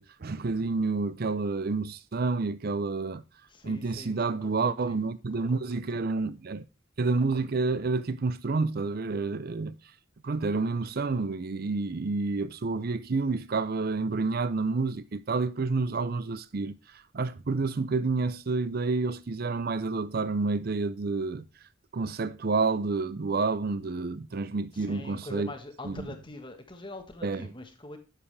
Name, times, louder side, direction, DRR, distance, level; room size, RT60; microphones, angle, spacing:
voice 1, 0.0-3.2 3.6-6.7 7.0-9.7 10.2-21.5 21.9-25.5 25.8-26.1 27.2-27.5, right 3 dB, 50° right, 0.5 m, -29 dB
voice 2, 3.5-5.0 5.3-5.8 24.7-28.0, left 2 dB, 25° left, 1.3 m, -44 dB
10.5 x 7.2 x 3.3 m
head